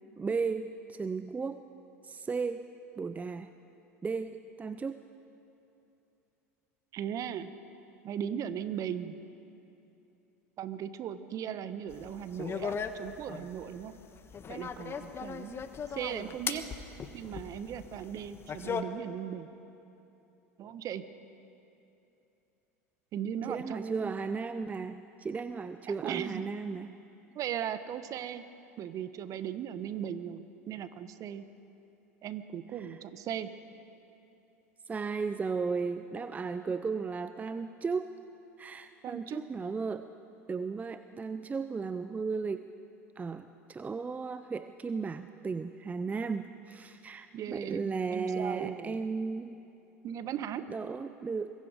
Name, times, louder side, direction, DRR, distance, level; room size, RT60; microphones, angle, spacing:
voice 1, 0.2-1.7 2.0-2.7 3.0-3.5 4.0-5.0 23.5-27.0 32.8-33.0 34.9-38.2 38.6-40.1 40.5-42.7 43.2-49.5 50.7-51.5, right 4 dB, 20° right, 11 dB, 0.6 m, -35 dB
voice 2, 6.9-7.5 8.0-9.2 10.6-13.9 14.5-15.6 15.9-16.6 17.1-19.5 20.6-21.0 23.1-24.1 25.9-26.5 27.3-28.4 28.8-31.4 32.2-33.5 39.0-39.4 47.3-49.0 50.0-50.6, right 9 dB, 45° right, 12 dB, 1.2 m, -37 dB
sound 1, 11.9-18.8, left 6 dB, 30° left, 1.3 m, -38 dB
24.5 x 22.5 x 5.1 m, 2.8 s
hypercardioid pair, 80°, 8 cm